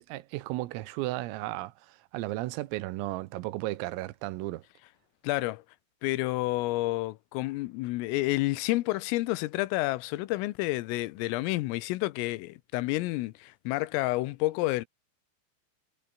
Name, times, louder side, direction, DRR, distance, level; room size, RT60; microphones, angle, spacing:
voice 1, 0.0-4.6, right 18 dB, 90° right, 3.7 m, -34 dB
voice 2, 5.2-5.6 6.0-14.9, left 19 dB, 90° left, 3.5 m, -29 dB
omnidirectional pair, 5.9 m